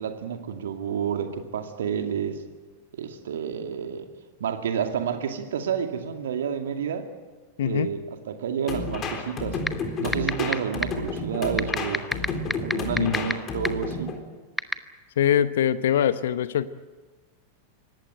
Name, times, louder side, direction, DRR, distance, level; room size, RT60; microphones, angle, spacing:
voice 1, 0.0-2.4 2.9-4.1 4.4-7.1 7.6-8.0 8.3-9.6 10.0-12.1 12.6-14.1, right 7 dB, 60° right, 6 dB, 2.4 m, -29 dB
voice 2, 7.6-7.9 13.0-13.1 15.2-16.7, left 10 dB, 60° left, 15 dB, 0.8 m, -23 dB
sound 1, 8.7-14.2, left 3 dB, 30° left, 3.8 m, -31 dB
sound 2, 9.7-9.8 10.1-10.5 10.8-10.9 11.6-13.3 13.6-13.7 14.6-14.7, left 1 dB, 5° left, 1.0 m, -22 dB
24.0 x 18.5 x 9.2 m, 1.3 s
figure-of-eight pair, 90°, 0 cm